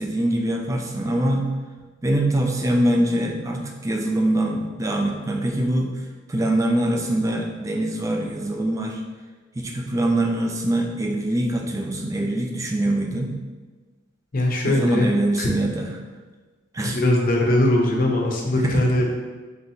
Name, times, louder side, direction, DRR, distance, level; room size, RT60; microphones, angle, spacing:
voice 1, 0.0-1.5 2.0-5.9 6.3-9.0 9.6-13.3 14.6-15.9 16.7-17.0 18.6-18.9, right 1 dB, 15° right, 1 dB, 0.4 m, -23 dB
voice 2, 14.3-15.1 15.4-15.6 16.8-19.1, left 1 dB, 45° left, 0 dB, 0.6 m, -21 dB
4.1 x 3.2 x 2.7 m, 1.3 s
head